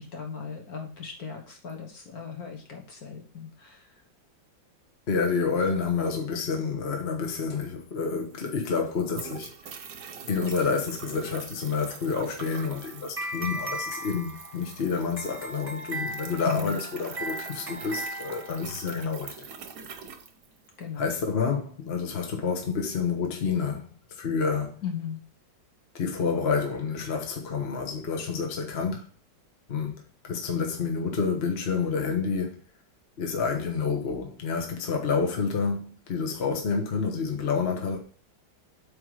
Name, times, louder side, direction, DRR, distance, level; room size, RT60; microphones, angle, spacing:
voice 1, 0.0-4.0 16.4-16.8 20.8-21.2 24.8-25.2, left 6 dB, 55° left, 1.7 m, -37 dB
voice 2, 5.1-9.5 10.3-19.3 21.0-23.9 24.2-24.8 25.9-29.0 29.7-30.0 30.2-32.6 33.2-38.0, left 5 dB, 35° left, 1.3 m, -29 dB
sound 1, 7.9-8.0 8.2-21.0, right 6 dB, 60° right, 1.3 m, -44 dB
sound 2, 12.4-18.9, right 1 dB, 10° right, 1.0 m, -37 dB
8.5 x 3.7 x 4.8 m
omnidirectional pair, 2.1 m